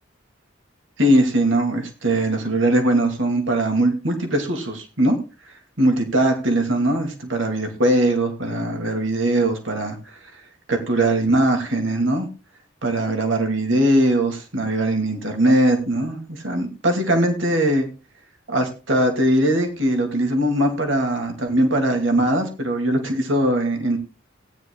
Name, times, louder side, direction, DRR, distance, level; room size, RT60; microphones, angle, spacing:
voice 1, 1.0-5.2 5.8-10.0 10.7-12.3 12.8-17.9 18.5-24.0, right 1 dB, 75° right, 4 dB, 2.3 m, -20 dB
17.5 x 9.9 x 2.3 m, 0.31 s
head